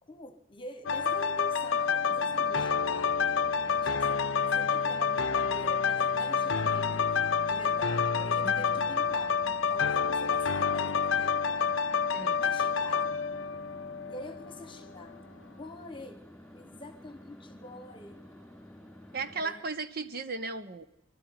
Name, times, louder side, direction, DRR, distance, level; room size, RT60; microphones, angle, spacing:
voice 1, 0.0-3.3 3.6-7.1 7.4-11.7 12.4-13.2 14.1-15.2 15.6-18.3 19.4-19.6, left 2 dB, 25° left, 9 dB, 1.3 m, -46 dB
sound 1, 0.9-14.6 15.0-15.2, left 6 dB, 70° left, 0.7 m, -28 dB
sound 2, 2.0-19.4, equal, 5° left, 2.8 m, -51 dB
voice 2, 8.4-8.8 12.1-12.4 19.1-20.9, right 3 dB, 45° right, 10 dB, 1.0 m, -36 dB
24.5 x 12.5 x 9.5 m, 0.85 s
head